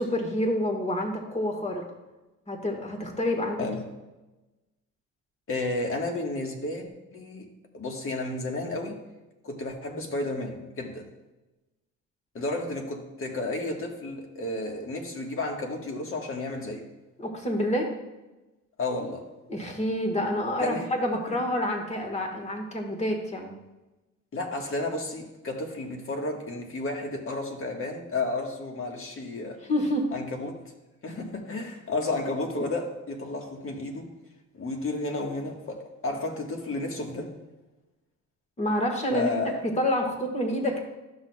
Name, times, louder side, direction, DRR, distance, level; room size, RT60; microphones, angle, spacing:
voice 1, 0.0-1.9 2.5-3.7 17.2-17.9 19.5-23.6 29.6-30.1 38.6-39.3 39.6-40.8, left 1 dB, 20° left, 3 dB, 1.6 m, -28 dB
voice 2, 5.5-7.5 7.7-9.0 9.4-11.1 12.3-16.9 18.8-19.3 20.6-20.9 21.3-21.4 24.3-29.6 30.1-30.6 31.0-34.1 34.5-37.3 39.1-39.6, left 2 dB, 45° left, 2 dB, 1.6 m, -32 dB
12.5 x 6.1 x 2.4 m, 1.1 s
cardioid pair, 90°, 30 cm